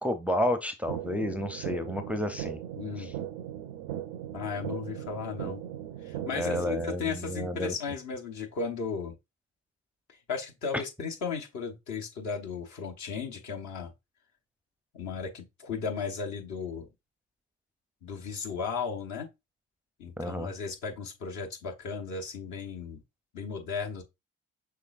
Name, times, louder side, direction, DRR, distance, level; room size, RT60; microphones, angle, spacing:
voice 1, 0.0-2.6 3.0-3.1 6.3-7.7 10.7-10.8 20.2-20.5, left 1 dB, 5° right, 0.5 m, -31 dB
sound 1, 0.9-6.9, right 11 dB, 75° right, 0.5 m, -38 dB
voice 2, 2.8-3.1 4.3-5.6 6.0-9.1 10.1-13.9 14.9-16.9 18.0-19.3 20.0-23.0 23.3-24.0, left 5 dB, 55° left, 1.0 m, -35 dB
5.8 x 3.2 x 2.4 m
figure-of-eight pair, 45°, 34 cm